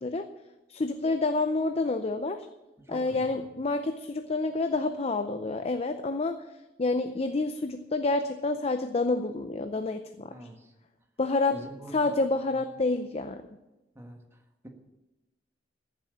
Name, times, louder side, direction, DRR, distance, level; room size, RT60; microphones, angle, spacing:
voice 1, 0.7-2.5 2.9-6.4 6.8-10.5 11.2-11.6 11.9-13.4, left 3 dB, 35° left, 8 dB, 0.6 m, -28 dB
voice 2, 2.8-3.5 10.3-10.7 11.5-12.1 14.0-14.7, right 1 dB, 15° right, 3 dB, 1.6 m, -45 dB
14.5 x 7.6 x 7.0 m, 1.0 s
head